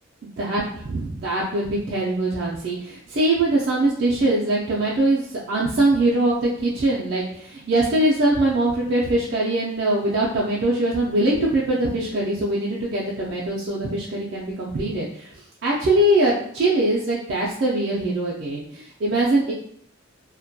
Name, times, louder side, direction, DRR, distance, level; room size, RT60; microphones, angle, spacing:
voice 1, 0.9-19.5, right 1 dB, 50° right, -5 dB, 0.3 m, -22 dB
2.2 x 2.1 x 2.6 m, 0.66 s
head